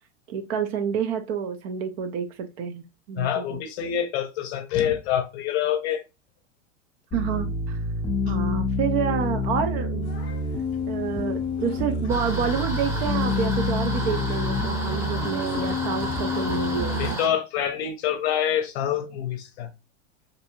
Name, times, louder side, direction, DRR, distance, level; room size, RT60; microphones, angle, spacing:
voice 1, 0.3-3.6 7.1-7.8 8.3-10.1 10.9-17.2, right 7 dB, 60° right, 0.5 m, -29 dB
voice 2, 3.2-6.0 17.0-19.7, left 9 dB, 60° left, 0.6 m, -26 dB
sound 1, 7.1-17.1, left 3 dB, 15° left, 0.4 m, -27 dB
sound 2, 10.0-17.2, left 2 dB, 30° left, 0.8 m, -43 dB
sound 3, 12.1-17.3, equal, 10° right, 0.7 m, -33 dB
2.6 x 2.2 x 2.9 m
supercardioid pair, 125°, 36 cm